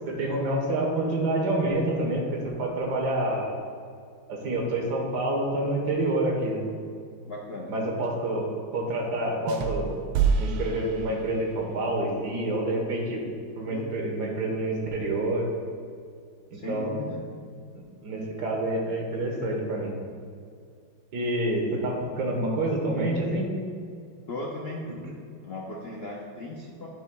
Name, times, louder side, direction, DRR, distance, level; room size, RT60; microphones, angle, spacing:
voice 1, 0.0-3.5 4.3-6.6 7.7-8.5 8.7-9.9 10.4-13.2 13.6-15.5 16.5-16.9 17.7-19.9 21.1-23.5, right 1 dB, 60° right, 0 dB, 1.7 m, -28 dB
voice 2, 7.3-7.7 13.7-13.9 16.5-17.2 24.3-24.9 25.4-26.9, left 2 dB, 85° left, -4 dB, 0.5 m, -37 dB
sound 1, 9.5-11.7, right 6 dB, 85° right, 1.4 m, -28 dB
10.0 x 7.7 x 2.3 m, 2.3 s
omnidirectional pair, 2.2 m